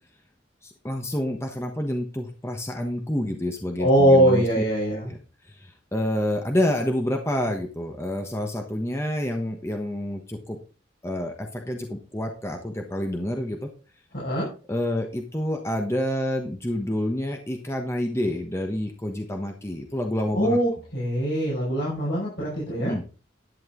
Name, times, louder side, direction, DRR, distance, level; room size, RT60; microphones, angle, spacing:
voice 1, 0.6-4.6 5.0-5.2 5.4-10.6 11.0-13.7 14.7-20.6 22.8-23.0, left 1 dB, 15° left, 3 dB, 1.1 m, -28 dB
voice 2, 3.8-5.1 14.1-14.5 20.3-22.9, equal, 60° left, -6 dB, 5.4 m, -22 dB
11.0 x 9.1 x 3.8 m, 0.34 s
head